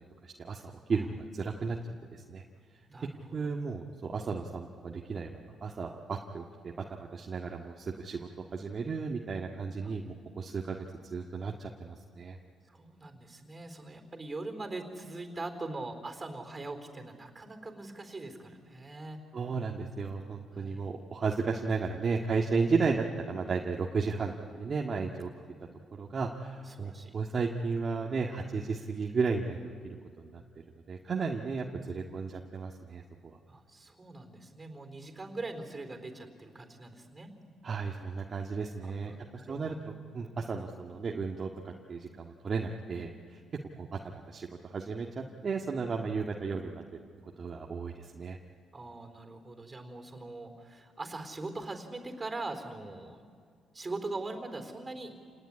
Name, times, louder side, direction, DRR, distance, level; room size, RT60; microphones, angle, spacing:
voice 1, 0.2-1.8 2.1-2.4 3.3-10.8 11.1-12.4 19.3-25.3 25.9-29.7 30.2-30.4 30.9-33.4 37.6-43.4 43.8-44.0 44.3-46.9 47.4-48.4, right 4 dB, 45° right, 0 dB, 1.7 m, -34 dB
voice 2, 2.9-3.3 9.8-9.9 12.7-19.2 20.5-20.9 26.7-27.1 33.5-37.3 39.0-39.8 48.7-53.2 53.7-55.2, right 2 dB, 25° right, 6 dB, 4.1 m, -41 dB
28.5 x 19.0 x 9.9 m, 2.1 s
cardioid pair, 90°, 0 cm